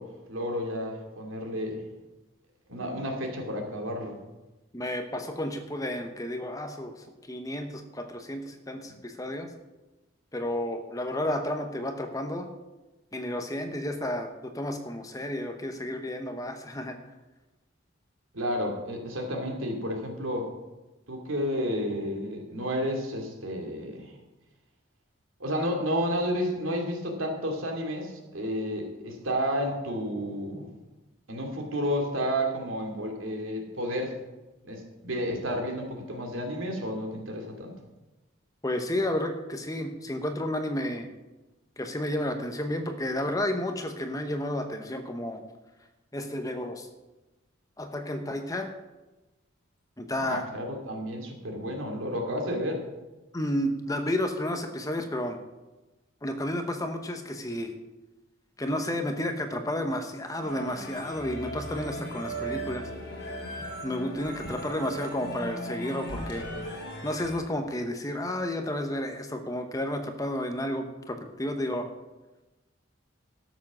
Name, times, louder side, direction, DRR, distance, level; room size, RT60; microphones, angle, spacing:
voice 1, 0.0-1.8 2.7-4.2 18.3-20.5 21.1-24.1 25.4-30.7 31.3-34.1 34.7-37.8 50.2-52.8, equal, 85° right, 2 dB, 2.5 m, -31 dB
voice 2, 4.7-9.5 10.3-12.5 13.1-17.0 38.6-41.1 41.8-45.4 46.1-46.9 47.8-48.7 50.0-50.5 53.3-55.4 56.2-57.7 58.6-62.9 63.8-66.5 67.0-71.9, left 1 dB, 15° left, 6 dB, 0.9 m, -31 dB
sound 1, 60.4-67.4, right 1 dB, 55° left, 2.9 m, -37 dB
12.5 x 7.3 x 6.2 m, 1.1 s
head